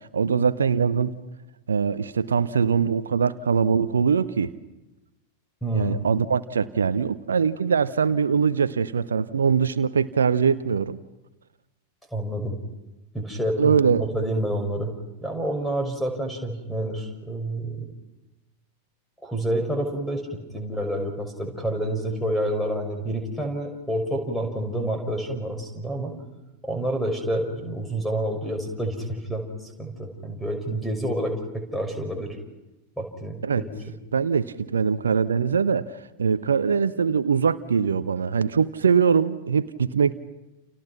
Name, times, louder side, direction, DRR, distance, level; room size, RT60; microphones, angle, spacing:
voice 1, 0.1-1.1 1.7-4.5 5.7-11.0 13.6-14.0 33.4-33.6 34.1-40.1, right 6 dB, 70° right, 14 dB, 0.9 m, -22 dB
voice 2, 5.6-6.0 12.1-12.6 13.1-14.9 15.2-17.9 19.2-20.3 20.5-26.1 26.6-32.4 33.0-33.7, right 1 dB, 5° left, 5 dB, 6.0 m, -28 dB
30.0 x 29.5 x 6.0 m, 1.0 s
figure-of-eight pair, 90°, 0 cm